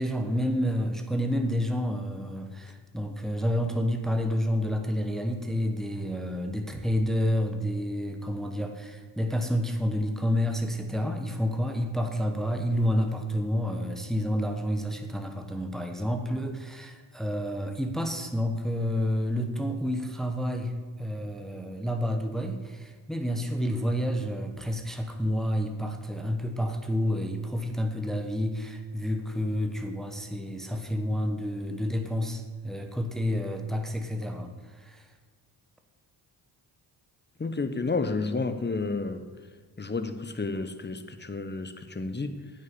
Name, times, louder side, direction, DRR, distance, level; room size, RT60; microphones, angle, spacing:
voice 1, 0.0-35.1, equal, ahead, 5 dB, 1.1 m, -29 dB
voice 2, 37.4-39.3 39.8-42.5, left 3 dB, 20° left, 9 dB, 0.9 m, -31 dB
9.2 x 5.8 x 6.8 m, 1.5 s
hypercardioid pair, 45°, 49 cm